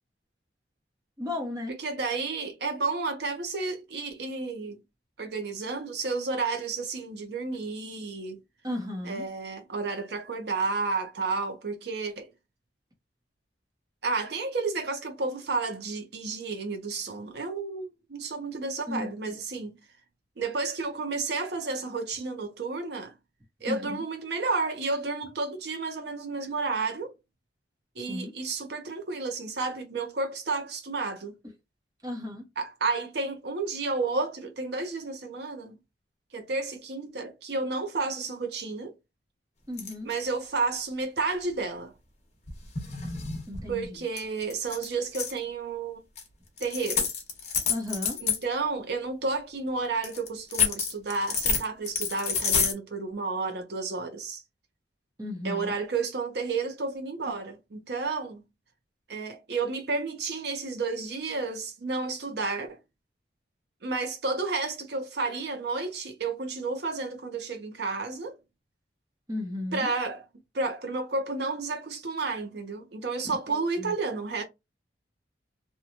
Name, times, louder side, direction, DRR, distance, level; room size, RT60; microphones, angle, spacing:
voice 1, 1.2-1.8 8.6-9.3 18.9-19.1 23.7-24.0 28.1-28.3 32.0-32.4 39.7-40.1 43.5-44.0 47.7-48.2 55.2-55.7 69.3-69.9 73.8-73.9, left 2 dB, 20° right, 0.8 m, -34 dB
voice 2, 1.7-4.8 5.2-8.4 9.0-12.3 14.0-19.7 20.4-23.1 23.6-27.1 28.0-31.3 32.6-35.8 36.3-38.9 40.0-41.9 43.7-46.0 46.6-47.1 48.2-54.4 55.4-58.4 59.1-62.8 63.8-68.4 69.7-70.2 70.5-74.4, right 3 dB, 60° right, 0.6 m, -31 dB
sound 1, 39.8-40.1 42.5-43.9 44.2-44.3 44.5-45.4 46.2-46.3 46.6-48.4 50.0-52.7, left 6 dB, 35° left, 0.8 m, -28 dB
2.9 x 2.2 x 2.5 m
head